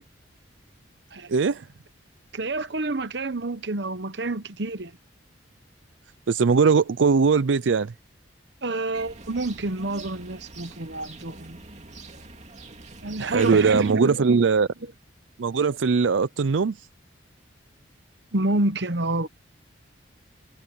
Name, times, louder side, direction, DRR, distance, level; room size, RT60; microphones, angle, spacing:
voice 1, 1.3-1.7 6.3-7.9 13.2-14.7 15.4-16.9, right 5 dB, 80° right, 0.5 m, -20 dB
voice 2, 2.3-4.9 8.6-11.6 13.0-14.5 18.3-19.3, right 2 dB, 60° right, 1.1 m, -28 dB
sound 1, 8.9-13.9, right 2 dB, 40° right, 2.5 m, -41 dB
head